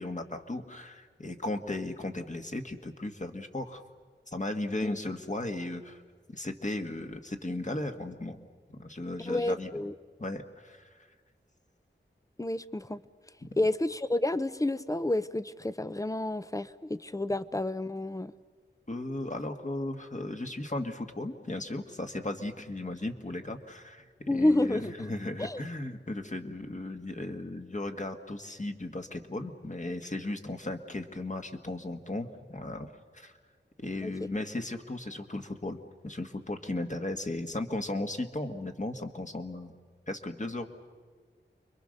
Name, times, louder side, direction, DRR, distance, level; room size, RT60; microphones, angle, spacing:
voice 1, 0.0-3.8 4.3-6.0 6.3-8.4 8.7-9.7 10.2-11.1 13.4-13.5 18.9-33.3 33.8-39.8 40.1-40.8, left 2 dB, 40° left, 5 dB, 1.8 m, -36 dB
voice 2, 9.3-9.9 12.4-13.0 13.6-18.3 24.3-25.6 34.0-34.1, left 1 dB, 15° left, 15 dB, 0.8 m, -30 dB
29.5 x 23.0 x 6.7 m, 1.5 s
wide cardioid pair, 60°, 20 cm